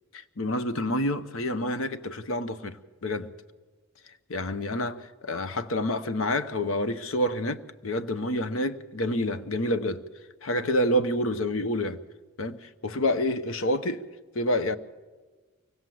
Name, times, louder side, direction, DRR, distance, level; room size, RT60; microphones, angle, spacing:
voice 1, 0.1-2.8 3.0-3.3 4.3-10.0 10.4-12.0 12.4-14.0 14.3-14.8, left 1 dB, 65° left, 0.9 m, -28 dB
24.0 x 17.5 x 7.8 m
head